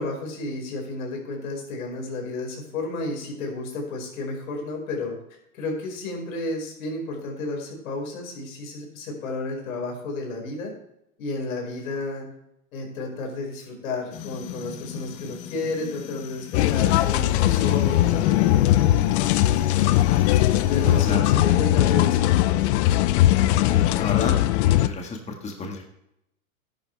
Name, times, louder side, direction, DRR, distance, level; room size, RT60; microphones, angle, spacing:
voice 1, 0.0-5.1 5.5-10.7 11.2-12.3 12.7-20.0 20.7-22.7, left 2 dB, 75° left, 0 dB, 5.2 m, -32 dB
sound 1, 14.1-21.2, left 10 dB, 35° left, 1.2 m, -39 dB
sound 2, 16.5-24.9, left 14 dB, 50° left, 0.7 m, -20 dB
voice 2, 23.7-24.3 24.6-25.8, left 4 dB, 15° left, 2 dB, 1.7 m, -32 dB
13.5 x 10.5 x 3.4 m, 0.79 s
hypercardioid pair, 125°, 42 cm